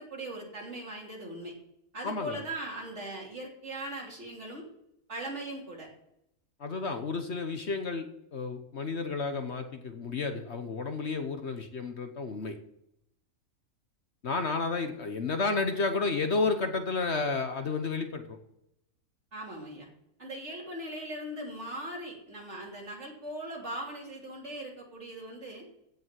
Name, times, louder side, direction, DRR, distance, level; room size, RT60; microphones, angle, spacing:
voice 1, 0.0-1.5 1.9-4.7 5.1-5.9 19.3-19.9 20.2-25.6, right 1 dB, 50° right, -1 dB, 3.4 m, -39 dB
voice 2, 2.0-2.4 6.6-12.6 14.2-18.4, left 4 dB, 50° left, 7 dB, 1.2 m, -31 dB
16.0 x 5.6 x 7.5 m, 0.81 s
omnidirectional pair, 1.5 m